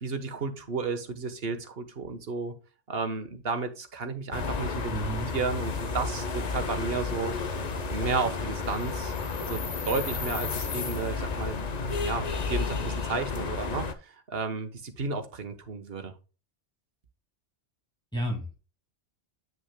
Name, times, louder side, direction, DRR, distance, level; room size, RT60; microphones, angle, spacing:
voice 1, 0.0-2.5 2.9-4.9 5.3-7.4 7.9-9.1 9.4-13.9 14.3-16.1, right 4 dB, 65° right, 8 dB, 1.4 m, -32 dB
sound 1, 4.3-13.9, left 4 dB, 45° left, 0.8 m, -32 dB
voice 2, 4.9-5.3 18.1-18.5, right 1 dB, 5° left, -1 dB, 2.2 m, -31 dB
9.3 x 6.1 x 2.2 m, 0.32 s
omnidirectional pair, 1.1 m